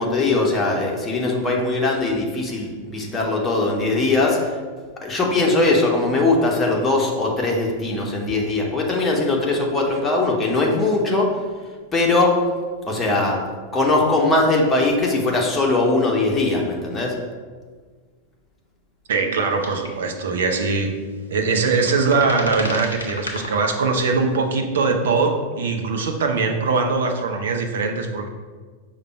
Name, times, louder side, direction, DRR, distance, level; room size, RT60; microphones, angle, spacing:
voice 1, 0.0-4.4 5.0-11.4 11.9-12.4 12.8-13.4 13.7-17.2, left 2 dB, 15° left, -2 dB, 0.8 m, -20 dB
voice 2, 19.1-20.9 21.3-28.3, right 4 dB, 60° right, 4 dB, 0.5 m, -21 dB
sound 1, 19.6-19.9 20.2-20.3 21.3-23.8 24.4-24.5, left 2 dB, 75° left, 0.6 m, -31 dB
5.1 x 2.2 x 4.4 m, 1.5 s
figure-of-eight pair, 90°, 0 cm